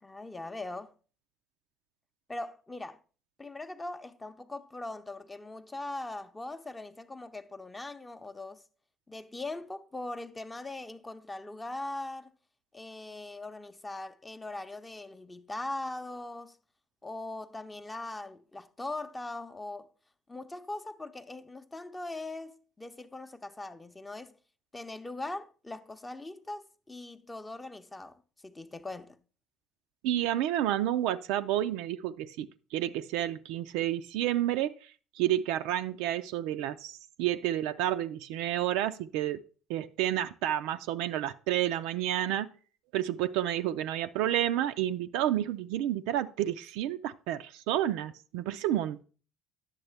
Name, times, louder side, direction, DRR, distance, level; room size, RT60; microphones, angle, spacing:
voice 1, 0.0-0.9 2.3-3.0 3.4-8.6 9.1-12.3 12.7-16.6 17.0-19.9 20.3-24.4 24.7-29.2, left 2 dB, 15° left, 0.7 m, -40 dB
voice 2, 30.0-34.7 35.2-39.4 39.7-42.5 42.9-49.0, right 12 dB, 65° right, 0.4 m, -30 dB
10.5 x 7.0 x 3.4 m
figure-of-eight pair, 60°, 0 cm